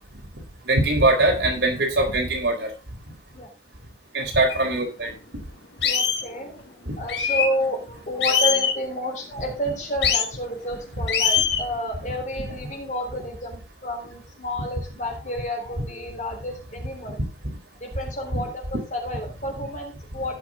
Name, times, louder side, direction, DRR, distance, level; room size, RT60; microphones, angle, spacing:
voice 1, 0.7-2.7 4.1-5.1 6.9-7.0, right 2 dB, 80° right, 1 dB, 3.9 m, -21 dB
sound 1, 4.5-4.6 5.1-5.2 5.8-6.2 7.1-7.5 8.2-8.8 10.0-10.3 11.1-11.6, left 7 dB, 80° left, 1.9 m, -22 dB
voice 2, 5.8-17.2 17.8-20.4, equal, 45° left, 1 dB, 3.6 m, -30 dB
16.5 x 6.0 x 3.7 m, 0.31 s
head